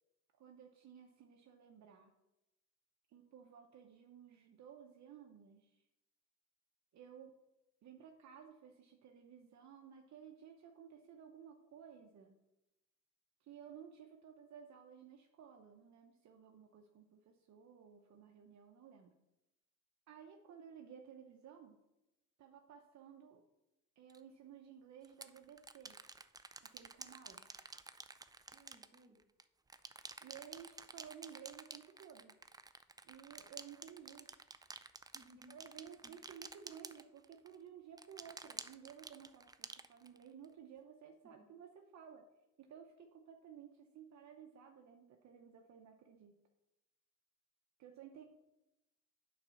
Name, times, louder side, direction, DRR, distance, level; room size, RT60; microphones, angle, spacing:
voice 1, 0.4-2.1 3.1-5.8 6.9-7.3 7.8-12.3 13.4-19.1 20.1-21.8 22.4-23.4 24.0-26.0 26.6-27.5 30.2-32.3 33.0-34.3 35.5-42.3 42.6-46.4 47.8-48.2, right 8 dB, 65° right, 3 dB, 0.9 m, -56 dB
sound 1, 24.1-24.2 25.0-29.4 29.7-37.5 38.0-40.4, right 3 dB, 15° right, 0.4 m, -51 dB
voice 2, 28.5-29.3 35.1-35.6 36.0-36.2 41.2-41.5, right 1 dB, 35° right, 1 dB, 1.8 m, -62 dB
8.8 x 4.1 x 5.7 m, 0.93 s
cardioid pair, 90°, 30 cm